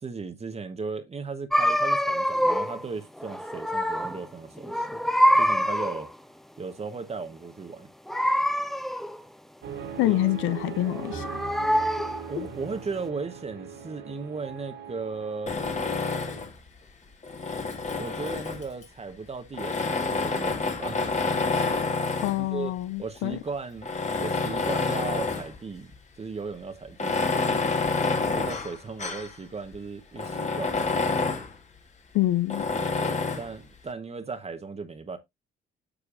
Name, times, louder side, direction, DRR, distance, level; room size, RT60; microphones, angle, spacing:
voice 1, 0.0-5.0 5.4-6.1 6.6-7.9 10.0-10.3 12.3-15.5 18.0-21.2 22.4-22.7 23.0-23.9 24.2-25.9 26.2-27.1 28.3-30.9 33.0-35.2, right 4 dB, 30° right, 1.0 m, -36 dB
sound 1, 1.5-2.8 3.2-4.3 4.6-6.1 8.1-9.2 10.8-12.3, equal, ahead, 0.6 m, -25 dB
sound 2, 9.6-16.4, right 6 dB, 75° right, 2.9 m, -40 dB
voice 2, 10.0-11.4 12.4-12.5 22.2-23.4 32.1-32.7, left 16 dB, 90° left, 0.5 m, -26 dB
Tools, 15.5-16.6 17.2-18.8 19.5-22.5 23.2-23.3 23.8-25.6 25.9-26.0 26.9-29.3 29.7-29.8 30.2-31.5 32.5-33.5, left 3 dB, 35° left, 1.7 m, -28 dB
10.0 x 6.6 x 2.5 m
cardioid pair, 90°, 20 cm